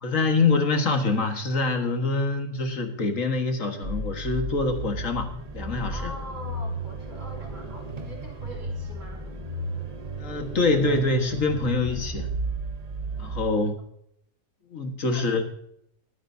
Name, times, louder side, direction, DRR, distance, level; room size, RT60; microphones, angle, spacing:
voice 1, 0.0-6.1 10.2-12.3 13.2-13.7 14.7-15.4, left 3 dB, 70° left, 5 dB, 1.9 m, -25 dB
sound 1, 3.8-13.4, right 2 dB, 30° right, 1.0 m, -33 dB
voice 2, 5.9-9.2 15.1-15.3, right 1 dB, 65° right, -2 dB, 3.9 m, -42 dB
21.5 x 9.4 x 2.7 m, 0.70 s
omnidirectional pair, 1.4 m